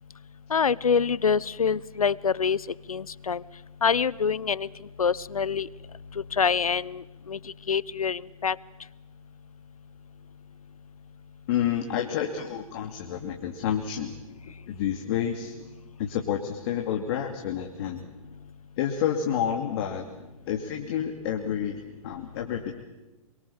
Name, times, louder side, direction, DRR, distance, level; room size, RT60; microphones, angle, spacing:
voice 1, 0.5-2.6 2.9-3.4 3.8-4.7 5.0-5.7 6.4-7.4 7.7-8.6, left 6 dB, 90° left, 22 dB, 0.8 m, -25 dB
voice 2, 11.5-14.2 14.7-15.6 16.0-18.1 18.8-20.1 20.5-22.9, left 9 dB, 45° left, 3 dB, 2.5 m, -29 dB
28.0 x 23.0 x 7.1 m, 1.1 s
hypercardioid pair, 125°, 18 cm